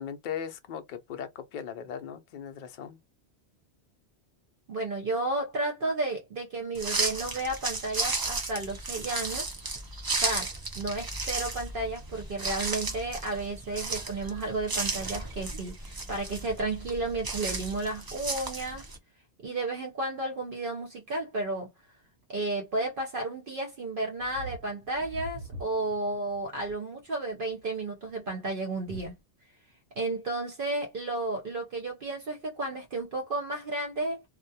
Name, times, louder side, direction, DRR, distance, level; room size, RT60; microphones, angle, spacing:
voice 1, 0.0-3.0, left 8 dB, 55° left, 0.6 m, -38 dB
voice 2, 4.7-9.5 10.2-18.9 19.4-21.7 22.3-29.1 30.0-34.2, right 2 dB, 55° right, 0.8 m, -32 dB
sound 1, 6.7-19.0, right 3 dB, 35° right, 0.4 m, -34 dB
sound 2, 24.2-26.8 27.4-27.7 28.1-28.2 28.9-29.1, right 1 dB, 85° right, 1.0 m, -43 dB
2.3 x 2.1 x 2.7 m
omnidirectional pair, 1.1 m